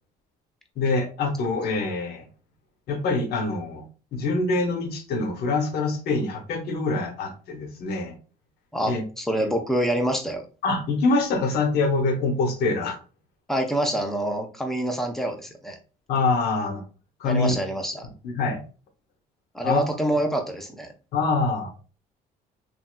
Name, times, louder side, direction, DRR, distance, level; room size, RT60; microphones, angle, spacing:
voice 1, 0.8-2.3 2.9-3.8 4.1-8.1 8.8-9.0 10.6-13.0 16.1-16.8 17.2-17.5 18.0-18.6 19.6-19.8 21.1-21.7, left 3 dB, 70° left, 4 dB, 0.9 m, -25 dB
voice 2, 8.7-10.4 13.5-15.8 17.2-18.1 19.5-20.9, right 1 dB, ahead, 3 dB, 0.6 m, -26 dB
3.2 x 2.7 x 2.2 m, 0.37 s
cardioid pair, 110°, 17 cm